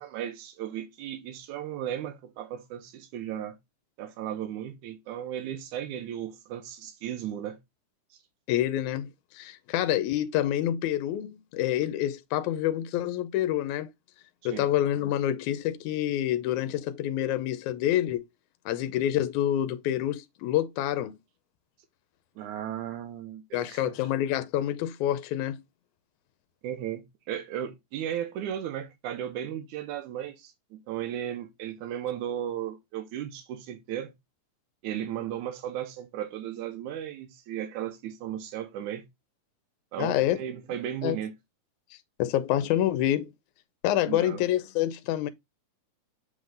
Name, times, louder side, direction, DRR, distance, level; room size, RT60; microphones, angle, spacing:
voice 1, 0.0-3.6 4.0-7.6 14.5-14.7 22.4-23.9 26.6-34.1 34.8-39.0 39.9-41.3 44.1-44.4, right 10 dB, 80° right, 2.5 m, -35 dB
voice 2, 8.5-13.9 14.5-18.2 18.7-21.2 23.5-25.6 40.0-40.4 41.0-41.2 42.2-43.3 43.8-45.3, left 12 dB, 80° left, 2.1 m, -27 dB
7.8 x 3.7 x 3.8 m
omnidirectional pair, 3.5 m